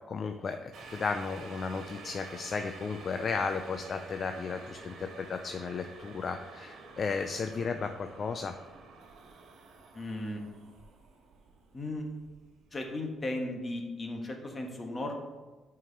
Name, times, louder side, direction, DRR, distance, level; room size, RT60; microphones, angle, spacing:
voice 1, 0.1-8.6, left 5 dB, 45° left, 7 dB, 0.4 m, -34 dB
sound 1, 0.7-12.8 13.1-13.2, right 3 dB, 75° right, 1.1 m, -50 dB
voice 2, 9.9-10.4 11.7-12.1 12.7-15.1, left 1 dB, 30° left, 2 dB, 1.3 m, -36 dB
6.0 x 4.8 x 5.2 m, 1.2 s
cardioid pair, 90°, 0 cm